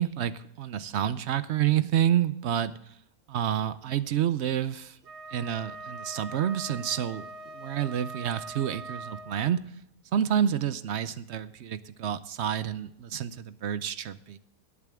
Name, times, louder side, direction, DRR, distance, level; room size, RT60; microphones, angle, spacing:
voice 1, 0.0-2.7 3.3-5.0 5.3-7.2 7.5-9.6 10.1-14.4, right 10 dB, 60° right, 14 dB, 0.7 m, -28 dB
Wind instrument woodwind instrument, 5.0-9.6, right 2 dB, 90° right, 1.8 m, -42 dB
18.0 x 8.6 x 3.5 m, 0.76 s
omnidirectional pair, 1.7 m